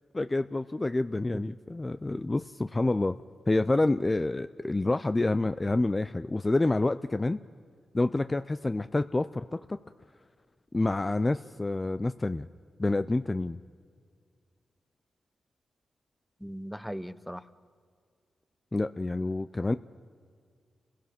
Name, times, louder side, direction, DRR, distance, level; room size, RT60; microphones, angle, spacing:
voice 1, 0.1-3.2 3.5-7.4 7.9-9.8 10.7-12.5 12.8-13.6 18.7-19.8, left 2 dB, 25° left, 11 dB, 0.5 m, -28 dB
voice 2, 16.4-17.4, equal, ahead, 14 dB, 0.8 m, -38 dB
29.5 x 16.5 x 5.9 m, 2.1 s
cardioid pair, 55°, 0 cm